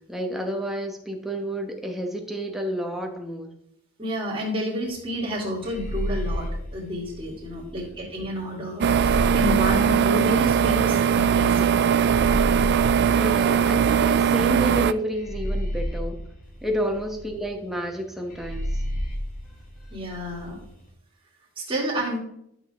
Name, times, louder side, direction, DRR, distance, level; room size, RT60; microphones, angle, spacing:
voice 1, 0.1-3.5 7.7-8.0 13.1-16.2 16.6-18.8, equal, ahead, 2 dB, 1.1 m, -30 dB
voice 2, 4.0-11.8 19.9-20.6 21.6-22.2, equal, 25° right, -6 dB, 2.8 m, -30 dB
sound 1, 5.6-7.8 8.8-11.0 12.0-14.3 15.1-17.3 18.3-20.5, equal, 40° left, 1.6 m, -31 dB
sound 2, 8.8-14.9, right 7 dB, 50° right, 0.3 m, -20 dB
12.0 x 6.1 x 3.6 m, 0.75 s
head